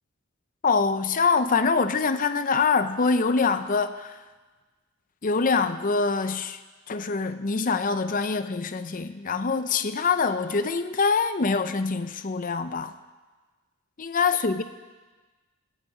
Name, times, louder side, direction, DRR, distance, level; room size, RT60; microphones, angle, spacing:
voice 1, 0.6-4.2 5.2-6.6 6.9-12.9 14.0-14.6, left 4 dB, 35° left, 10 dB, 0.6 m, -24 dB
23.5 x 8.1 x 4.9 m, 1.3 s
head